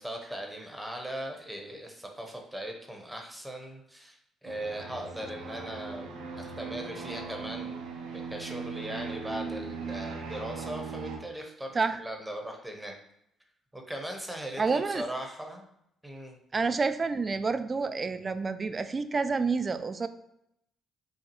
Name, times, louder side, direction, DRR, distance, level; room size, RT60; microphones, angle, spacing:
voice 1, 0.0-7.8 8.1-12.9 13.7-15.7 16.0-16.4, right 1 dB, 5° right, 2 dB, 0.9 m, -39 dB
sound 1, 4.4-11.2, right 4 dB, 90° right, 0.7 m, -39 dB
voice 2, 14.6-15.0 16.5-20.1, right 4 dB, 35° right, 11 dB, 0.3 m, -28 dB
5.2 x 2.3 x 3.0 m, 0.77 s
supercardioid pair, 70°, 0 cm